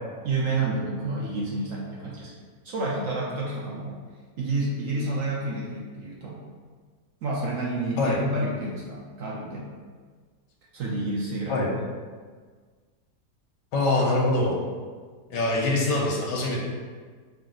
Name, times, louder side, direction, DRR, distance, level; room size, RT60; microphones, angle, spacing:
voice 1, 0.2-2.3 2.6-4.0 4.4-6.4 7.2-9.7 10.7-11.7, right 2 dB, 70° right, -4 dB, 0.8 m, -29 dB
voice 2, 13.7-14.6 15.3-16.6, left 2 dB, 85° left, -1 dB, 1.4 m, -24 dB
4.8 x 2.0 x 3.7 m, 1.5 s
omnidirectional pair, 1.8 m